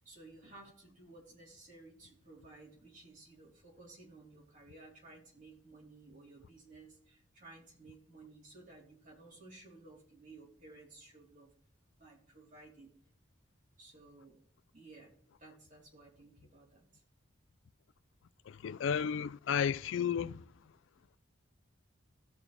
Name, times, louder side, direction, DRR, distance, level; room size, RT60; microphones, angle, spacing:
voice 1, 0.0-11.5 12.0-12.9 13.8-14.4 14.7-15.1 15.4-17.0, right 2 dB, 40° right, 4.0 m, -56 dB
voice 2, 18.5-20.4, left 7 dB, 75° left, 0.3 m, -33 dB
17.5 x 6.1 x 3.4 m
head